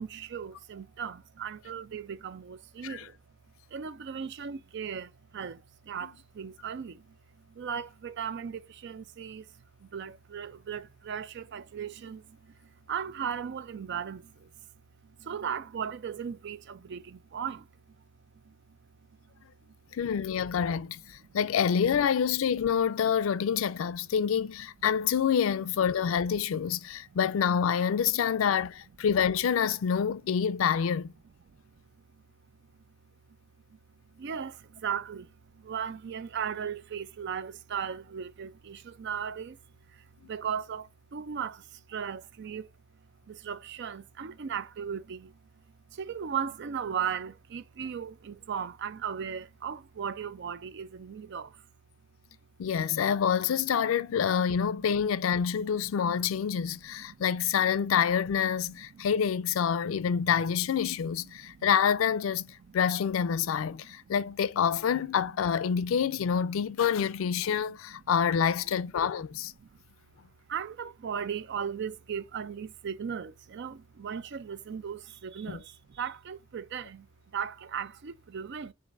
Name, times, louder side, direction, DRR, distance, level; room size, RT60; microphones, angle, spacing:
voice 1, 0.0-3.2 3.7-7.2 7.5-9.5 9.8-12.6 12.9-14.5 15.0-17.7 18.4-18.5 21.3-21.4 27.1-27.2 34.1-39.6 39.9-42.7 43.3-45.4 45.9-51.6 54.4-54.5 54.9-55.0 55.5-55.6 57.0-57.2 58.9-59.1 59.8-60.0 61.4-61.7 62.7-62.8 63.9-64.0 69.6-69.8 70.5-77.1 77.3-78.7, right 7 dB, 60° right, 0.4 m, -37 dB
voice 2, 19.9-31.1 52.6-62.5 62.7-69.5 75.5-75.6, left 7 dB, 80° left, 0.4 m, -27 dB
7.0 x 2.5 x 2.4 m
head